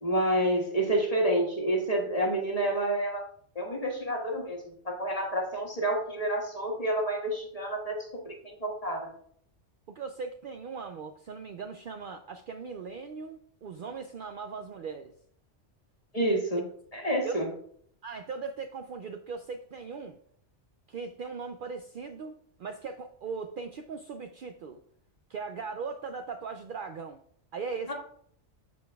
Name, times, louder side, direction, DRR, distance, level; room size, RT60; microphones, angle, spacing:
voice 1, 0.0-3.2 3.5-4.6 4.8-9.1 16.1-16.6 16.9-17.5 27.9-28.0, right 1 dB, 35° left, 0 dB, 1.5 m, -29 dB
voice 2, 9.9-15.1 17.2-17.4 18.0-20.2 20.9-24.8 25.3-27.2 27.5-27.9, right 5 dB, 60° right, 6 dB, 0.6 m, -39 dB
13.0 x 5.1 x 2.3 m, 0.63 s
omnidirectional pair, 1.2 m